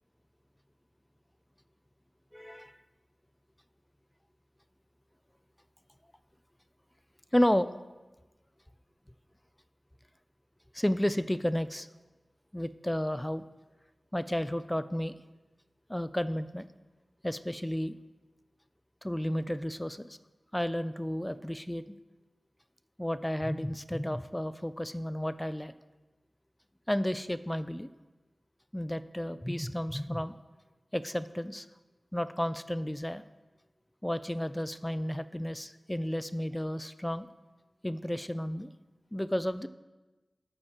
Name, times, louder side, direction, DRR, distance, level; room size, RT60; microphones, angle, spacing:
voice 1, 2.3-2.8 7.3-7.7 10.7-11.9 12.5-13.4 14.1-15.2 15.9-16.7 17.2-18.0 19.0-20.2 20.5-22.0 23.0-25.7 26.9-27.9 28.7-30.4 30.9-31.7 32.1-33.2 34.0-37.3 37.8-38.7 39.1-39.7, equal, 10° left, 13 dB, 0.4 m, -32 dB
11.5 x 8.8 x 2.9 m, 1.2 s
cardioid pair, 45°, 0 cm